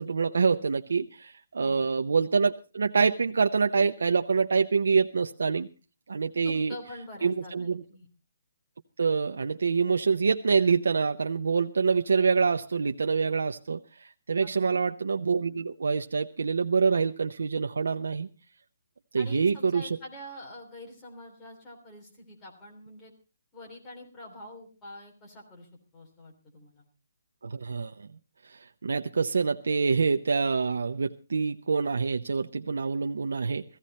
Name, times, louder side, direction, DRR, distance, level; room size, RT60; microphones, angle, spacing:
voice 1, 0.0-5.7 6.1-6.7 7.2-7.8 9.0-18.3 19.1-20.0 27.4-28.1 28.4-33.6, right 5 dB, 85° right, 7 dB, 0.7 m, -26 dB
voice 2, 6.4-8.1 14.4-14.8 19.2-23.1 23.5-25.7 25.9-26.8, left 1 dB, 10° left, -2 dB, 3.3 m, -45 dB
15.5 x 15.0 x 4.2 m, 0.33 s
hypercardioid pair, 175°, 0 cm